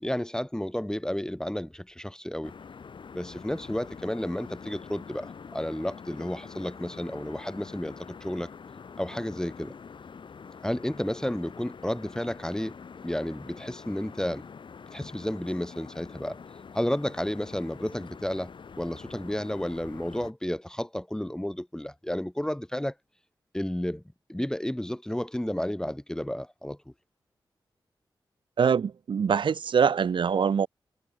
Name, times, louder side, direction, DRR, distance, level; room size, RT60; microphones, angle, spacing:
voice 1, 0.0-2.5 3.1-8.5 9.0-9.7 10.6-12.8 13.0-14.4 14.9-16.4 16.7-22.9 23.5-24.0 24.3-26.8, left 1 dB, 5° left, 1.6 m, -32 dB
sound 1, 2.4-20.3, left 6 dB, 70° left, 4.4 m, -45 dB
voice 2, 28.6-30.7, right 6 dB, 70° right, 0.7 m, -24 dB
wide cardioid pair, 95°, 9 cm